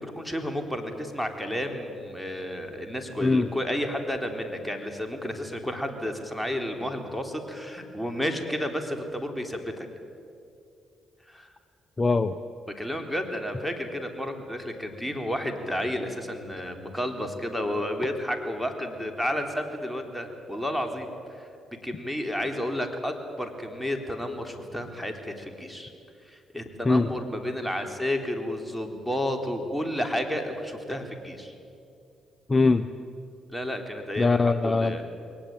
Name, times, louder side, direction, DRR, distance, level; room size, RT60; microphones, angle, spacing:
voice 1, 0.0-9.7 11.3-11.5 12.8-21.5 21.8-25.9 26.2-31.5 33.5-35.0, equal, ahead, 4 dB, 3.8 m, -31 dB
voice 2, 12.0-12.3 26.9-27.1 32.5-32.8 34.2-35.0, left 3 dB, 30° left, 11 dB, 0.9 m, -21 dB
22.0 x 19.0 x 9.1 m, 2.5 s
supercardioid pair, 55°, 0 cm